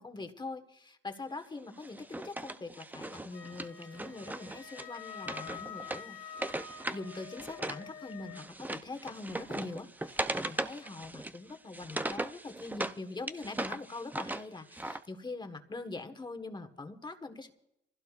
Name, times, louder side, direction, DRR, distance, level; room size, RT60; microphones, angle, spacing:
voice 1, 0.0-17.5, left 3 dB, 20° left, 7 dB, 1.4 m, -43 dB
Wood, 1.8-7.8 8.1-13.0 13.3-15.0, right 2 dB, 10° right, 0.5 m, -39 dB
Wind instrument woodwind instrument, 3.3-8.5, left 7 dB, 75° left, 1.6 m, -47 dB
25.0 x 16.0 x 2.5 m, 0.84 s
cardioid pair, 90°, 20 cm